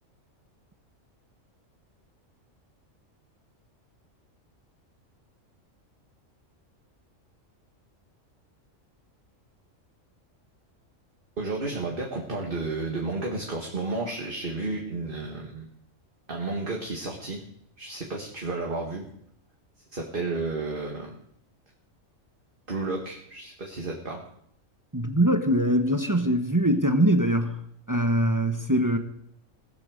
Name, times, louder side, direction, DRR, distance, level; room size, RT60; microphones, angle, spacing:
voice 1, 11.4-15.7 16.3-17.4 17.8-19.1 19.9-21.2 22.7-24.3, right 3 dB, 40° right, 0 dB, 2.0 m, -32 dB
voice 2, 24.9-27.6 27.9-29.0, right 1 dB, 15° right, 7 dB, 1.0 m, -22 dB
18.5 x 8.6 x 6.6 m, 0.71 s
omnidirectional pair, 1.4 m